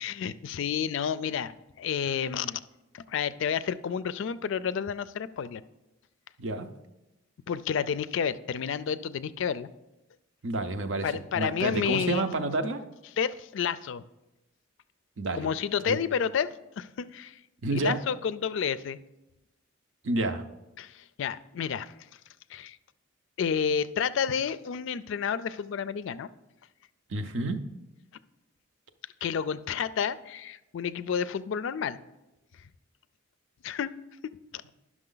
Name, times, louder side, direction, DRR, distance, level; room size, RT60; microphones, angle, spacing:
voice 1, 0.0-2.6 2.9-5.6 7.5-9.7 11.0-12.3 13.2-14.0 15.3-17.4 17.7-19.0 20.8-21.9 22.5-22.8 23.4-26.3 29.2-32.0 33.6-33.9 34.2-34.4, left 7 dB, 65° left, 15 dB, 0.3 m, -30 dB
voice 2, 10.4-12.8 15.2-15.5 15.9-16.0 17.6-18.0 20.0-20.4 27.1-27.6, right 2 dB, 65° right, 8 dB, 0.6 m, -29 dB
10.5 x 6.1 x 3.9 m, 0.97 s
head